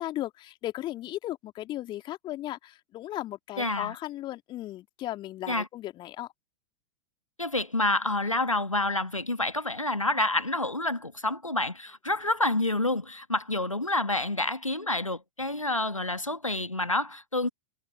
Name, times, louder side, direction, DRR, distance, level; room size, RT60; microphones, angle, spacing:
voice 1, 0.0-6.3, left 14 dB, 30° left, 2.7 m, -36 dB
voice 2, 3.6-3.9 5.5-5.7 7.4-17.5, left 2 dB, 90° left, 1.4 m, -28 dB
figure-of-eight pair, 95°, 16 cm